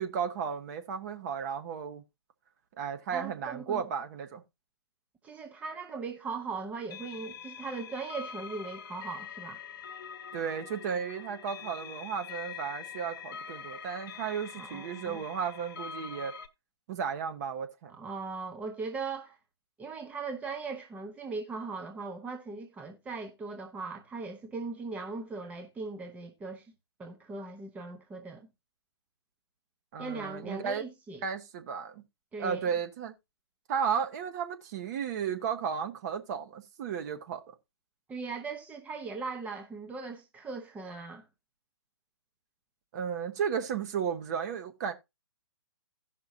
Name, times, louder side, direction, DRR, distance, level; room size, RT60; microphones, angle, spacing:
voice 1, 0.0-2.0 2.8-4.4 10.3-16.3 16.9-17.9 29.9-30.8 31.2-32.0 32.4-33.1 33.7-37.5 42.9-44.9, right 7 dB, 40° right, 1.3 m, -34 dB
voice 2, 3.1-3.8 5.2-9.6 14.6-15.2 17.9-19.4 19.8-26.7 27.0-28.5 30.0-31.2 32.3-32.6 38.1-41.2, right 4 dB, 10° right, 0.9 m, -39 dB
sound 1, 6.8-16.5, left 7 dB, 50° left, 1.2 m, -44 dB
16.5 x 5.8 x 2.6 m
figure-of-eight pair, 125°, 14 cm